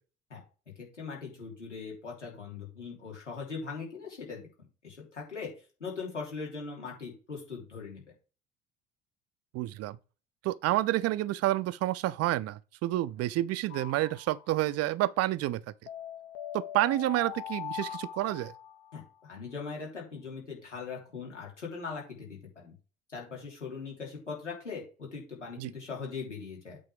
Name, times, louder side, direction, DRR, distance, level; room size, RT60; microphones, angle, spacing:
voice 1, 0.8-4.4 4.8-5.5 5.8-8.0 18.9-22.7 23.1-26.8, left 5 dB, 85° left, 3.2 m, -40 dB
voice 2, 9.5-10.0 10.4-15.6 16.5-18.5 25.6-25.7, right 15 dB, 45° right, 0.6 m, -29 dB
sound 1, 13.7-14.7 15.9-19.1, left 10 dB, 60° left, 1.4 m, -41 dB
8.6 x 4.0 x 4.9 m
figure-of-eight pair, 60°, 35 cm